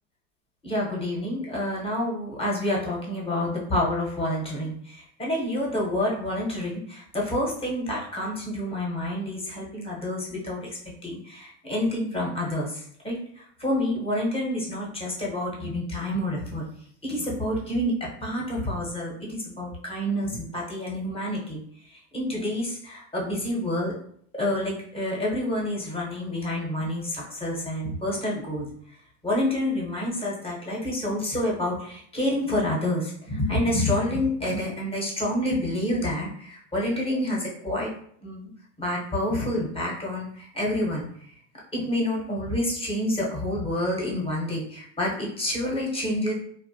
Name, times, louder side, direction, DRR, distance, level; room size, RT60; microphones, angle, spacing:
voice 1, 0.6-10.7 11.0-16.6 17.0-21.6 21.9-23.9 24.3-28.7 29.2-37.9 38.2-38.5 38.8-41.1 41.7-46.3, left 1 dB, 15° left, -3 dB, 0.8 m, -28 dB
2.6 x 2.1 x 2.7 m, 0.63 s
hypercardioid pair, 105°, 45 cm